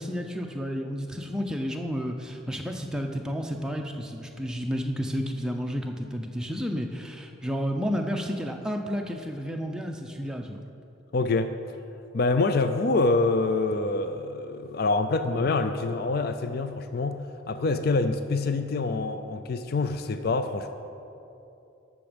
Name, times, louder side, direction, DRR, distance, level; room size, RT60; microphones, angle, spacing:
voice 1, 0.0-10.6, equal, 5° right, 2 dB, 0.6 m, -31 dB
voice 2, 11.1-11.5 12.1-20.7, left 3 dB, 50° left, 9 dB, 0.4 m, -26 dB
13.0 x 6.1 x 5.1 m, 2.8 s
head